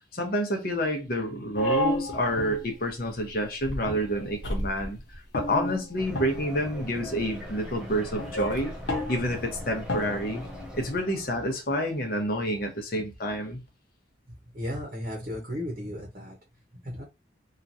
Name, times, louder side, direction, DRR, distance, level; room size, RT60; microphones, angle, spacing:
voice 1, 0.1-5.0 5.3-8.7 9.1-10.4 10.7-13.6, equal, 55° left, 0.8 m, -29 dB
sound 1, 1.5-3.1 3.7-5.0 5.3-6.7 6.9-7.3 8.1-11.0, equal, 85° left, 0.9 m, -32 dB
sound 2, 6.0-11.7, left 1 dB, 5° right, 0.6 m, -41 dB
voice 2, 14.5-16.4 16.8-17.0, left 1 dB, 45° right, 0.8 m, -34 dB
3.0 x 2.4 x 2.6 m
head